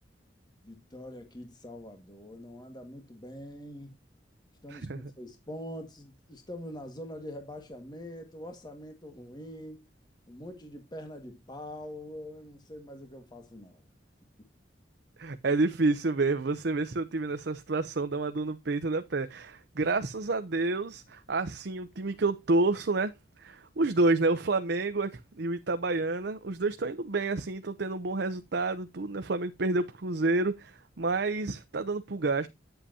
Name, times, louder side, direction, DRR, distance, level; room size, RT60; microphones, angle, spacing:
voice 1, 0.6-4.0 4.6-9.8 10.3-13.8, left 1 dB, 25° left, 1.7 m, -44 dB
voice 2, 15.2-23.1 23.4-25.1 25.4-32.5, right 3 dB, 65° right, 0.7 m, -29 dB
9.9 x 7.8 x 2.8 m
head